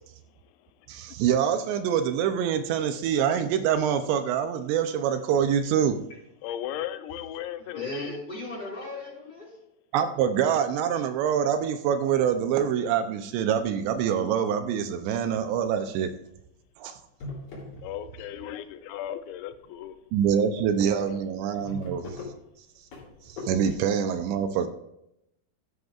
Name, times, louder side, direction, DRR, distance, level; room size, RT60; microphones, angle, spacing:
voice 1, 0.9-6.0 9.9-16.1 16.8-16.9 20.1-22.1 23.3-24.7, right 8 dB, 80° right, 8 dB, 2.8 m, -25 dB
voice 2, 6.4-8.2 17.8-20.0 21.1-21.2, left 11 dB, 85° left, 11 dB, 2.9 m, -36 dB
voice 3, 7.7-9.5 18.2-18.5, left 2 dB, 10° left, -4 dB, 4.9 m, -37 dB
sound 1, 16.6-16.7 17.0-18.3 18.7-19.3 19.8-20.0 20.2-20.3 20.6-20.7 21.0-23.7, left 2 dB, 55° left, 4.5 m, -41 dB
16.0 x 11.5 x 2.4 m, 0.83 s
omnidirectional pair, 5.1 m